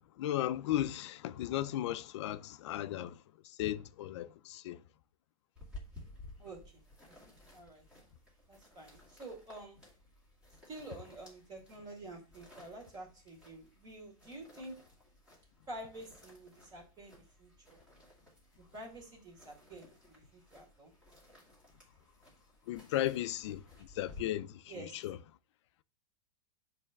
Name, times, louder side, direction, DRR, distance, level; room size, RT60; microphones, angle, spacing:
voice 1, 0.2-4.8 22.7-25.2, left 13 dB, 50° left, 0.4 m, -36 dB
sound 1, 5.6-24.2, left 2 dB, 5° right, 1.9 m, -56 dB
voice 2, 6.4-6.8 7.3-7.8 8.5-9.8 10.7-14.8 15.7-17.8 18.7-20.9 24.7-24.9, right 2 dB, 20° right, 2.2 m, -49 dB
6.7 x 3.3 x 5.8 m
supercardioid pair, 170°, 19 cm